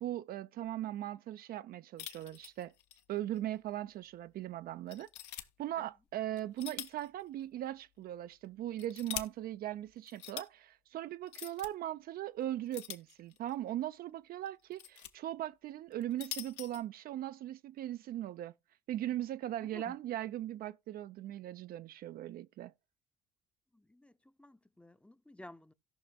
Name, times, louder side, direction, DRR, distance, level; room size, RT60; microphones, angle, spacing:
voice 1, 0.0-2.7 3.1-5.1 5.6-18.5 18.9-22.7, right 13 dB, 55° right, 0.4 m, -39 dB
sound 1, 2.0-3.0 3.4-3.5 4.0-4.1 4.9-5.5 6.4-7.1 7.4-7.5 8.4-9.3 10.1-10.5 11.3-11.7 12.7-13.5 14.5-15.1 15.9-16.8, left 11 dB, 70° left, 0.9 m, -44 dB
voice 2, 19.6-20.0 23.7-24.1 24.4-25.7, left 1 dB, 5° left, 0.6 m, -53 dB
17.0 x 5.8 x 2.3 m
hypercardioid pair, 55°, 19 cm